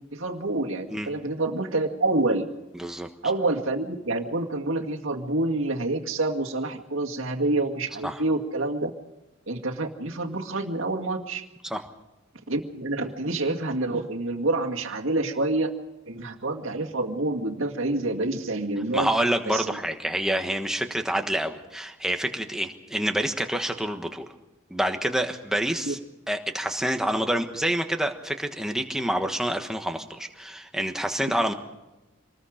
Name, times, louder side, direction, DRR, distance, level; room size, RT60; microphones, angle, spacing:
voice 1, 0.1-2.5 3.2-8.9 9.5-11.4 12.5-15.7 16.1-19.1 19.5-19.8 25.8-25.9, right 2 dB, 75° right, 2 dB, 2.0 m, -27 dB
voice 2, 2.8-3.1 8.0-8.2 11.6-11.8 18.9-24.2 24.7-26.0 26.3-31.5, right 1 dB, 5° right, 5 dB, 1.3 m, -27 dB
26.5 x 20.5 x 5.1 m, 1.0 s
head